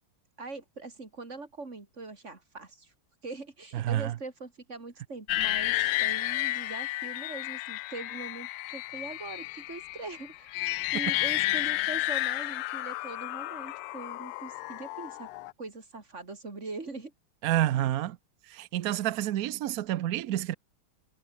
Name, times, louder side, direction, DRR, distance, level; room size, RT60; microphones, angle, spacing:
voice 1, 0.4-2.9 3.2-10.6 10.9-15.3 15.6-17.1, right 3 dB, 30° right, 3.5 m, -42 dB
voice 2, 3.7-4.2 17.4-18.2 18.5-20.5, right 13 dB, 80° right, 0.8 m, -29 dB
sound 1, 5.3-15.5, left 18 dB, 90° left, 1.5 m, -32 dB
omnidirectional pair, 2.4 m